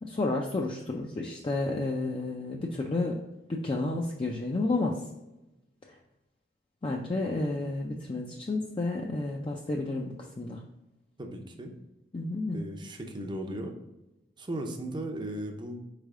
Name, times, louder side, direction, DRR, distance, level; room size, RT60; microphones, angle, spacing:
voice 1, 0.0-3.2 3.5-5.0 6.8-10.6 12.1-12.6, left 2 dB, 30° left, 0 dB, 0.4 m, -31 dB
voice 2, 11.2-11.7 12.5-13.8 14.4-15.7, right 1 dB, 25° right, 4 dB, 0.6 m, -36 dB
4.5 x 3.3 x 3.6 m, 0.97 s
head